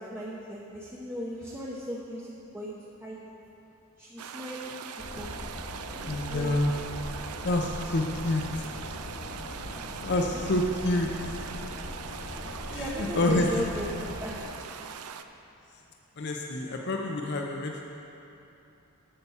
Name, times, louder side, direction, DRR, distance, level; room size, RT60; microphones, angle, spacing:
voice 1, 0.0-2.7 3.0-3.2 4.0-4.7 5.2-5.3 5.9-6.6 10.3-10.4 12.7-14.6, equal, 10° right, -6 dB, 0.7 m, -37 dB
sound 1, 4.2-15.2, right 7 dB, 85° right, 0.5 m, -42 dB
sound 2, 5.0-14.4, equal, 75° left, 2.5 m, -40 dB
voice 2, 6.0-6.7 7.4-8.6 10.0-11.6 12.7-13.5 16.2-17.8, left 1 dB, 50° left, 1 dB, 0.6 m, -28 dB
8.7 x 6.7 x 7.1 m, 2.9 s
head